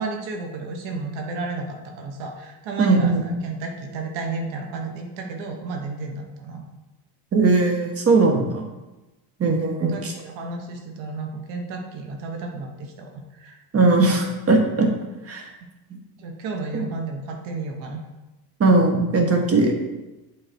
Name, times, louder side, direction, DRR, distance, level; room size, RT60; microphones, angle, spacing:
voice 1, 0.0-6.6 9.5-9.6 9.9-13.6 16.2-18.0, right 3 dB, 65° right, 3 dB, 1.3 m, -32 dB
voice 2, 2.8-3.2 7.3-8.7 9.4-10.1 13.7-14.9 15.3-15.5 16.7-16.9 18.6-19.8, right 3 dB, 30° right, 2 dB, 1.4 m, -19 dB
8.1 x 3.8 x 4.5 m, 1.1 s
supercardioid pair, 110°, 48 cm